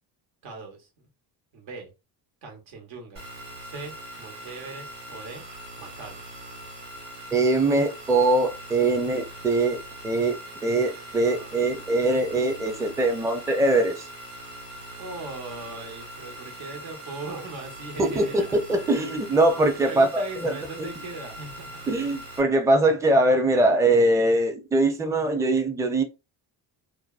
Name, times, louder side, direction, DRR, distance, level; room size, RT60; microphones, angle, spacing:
voice 1, 0.4-1.1 1.5-1.9 2.4-3.3 3.6-5.4 5.8-6.2 11.2-12.0 15.0-18.5 19.9-21.8, right 3 dB, 75° right, 1.1 m, -39 dB
sound 1, 3.2-22.4, right 1 dB, 45° right, 1.1 m, -42 dB
voice 2, 7.3-14.1 18.0-20.5 20.8-20.9 21.9-26.0, right 2 dB, 5° right, 0.4 m, -22 dB
2.5 x 2.2 x 2.3 m
cardioid pair, 85°, 48 cm